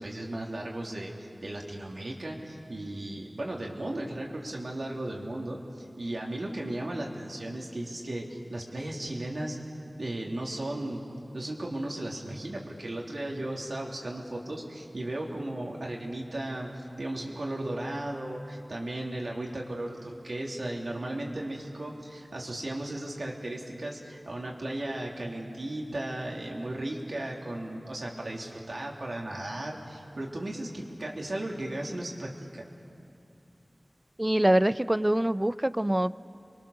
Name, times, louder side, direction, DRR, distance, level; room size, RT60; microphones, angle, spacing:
voice 1, 0.0-9.6 9.9-11.0 11.3-32.7, right 1 dB, 75° right, -1 dB, 3.2 m, -36 dB
voice 2, 34.2-36.1, right 1 dB, 25° right, 14 dB, 0.6 m, -24 dB
29.0 x 23.0 x 6.8 m, 2.5 s
wide cardioid pair, 45°, 0 cm